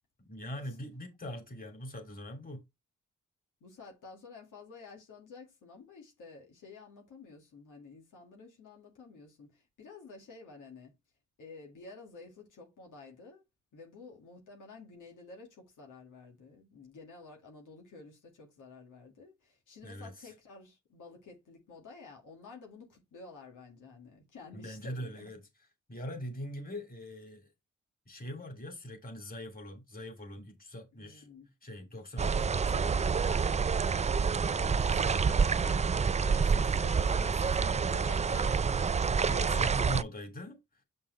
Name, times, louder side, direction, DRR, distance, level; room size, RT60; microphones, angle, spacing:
voice 1, 0.3-2.6 19.8-20.3 24.5-25.4 25.9-27.5 28.1-31.3 31.6-33.5 34.4-35.8 36.2-38.6 39.3-40.6, equal, 30° left, 2.7 m, -42 dB
voice 2, 3.6-10.9 11.4-13.4 13.7-25.3 30.9-31.5 34.9-35.4 39.8-40.1, left 4 dB, 85° left, 2.2 m, -52 dB
sound 1, 32.2-40.0, right 5 dB, 25° right, 0.3 m, -28 dB
6.8 x 5.4 x 3.2 m
cardioid pair, 55°, 30 cm